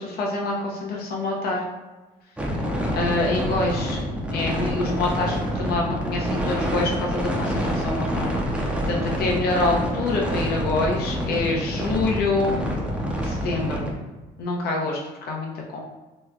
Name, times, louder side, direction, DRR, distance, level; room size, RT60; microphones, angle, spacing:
voice 1, 0.0-1.6 2.9-4.0 4.3-12.6 13.2-13.9 14.4-15.8, left 2 dB, 65° left, -1 dB, 0.8 m, -26 dB
sound 1, 2.4-13.9, equal, 5° right, 0.6 m, -27 dB
3.2 x 2.2 x 3.6 m, 1.2 s
cardioid pair, 110°, 17 cm